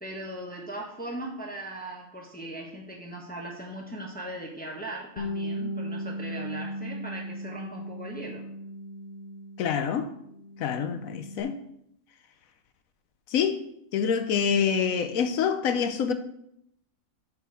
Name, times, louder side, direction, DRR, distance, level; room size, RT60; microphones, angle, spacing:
voice 1, 0.0-8.4, right 1 dB, 5° left, -1 dB, 1.0 m, -39 dB
Bass guitar, 5.2-9.9 10.2-11.4, equal, 50° left, 0.8 m, -37 dB
voice 2, 9.6-10.1 10.6-11.6 13.3-13.6 13.9-16.1, left 7 dB, 85° left, 10 dB, 1.1 m, -26 dB
7.8 x 5.1 x 4.7 m, 0.73 s
omnidirectional pair, 1.4 m